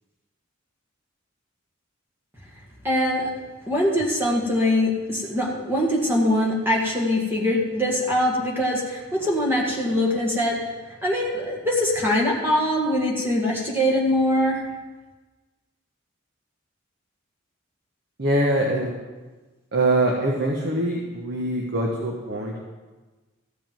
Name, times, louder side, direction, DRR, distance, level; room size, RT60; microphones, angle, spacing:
voice 1, 2.8-3.3 3.7-10.6 11.0-14.7, left 1 dB, 10° right, -3 dB, 1.8 m, -23 dB
voice 2, 18.2-18.9 19.7-22.7, right 1 dB, 55° right, -2 dB, 1.4 m, -23 dB
14.5 x 5.3 x 7.6 m, 1.3 s
head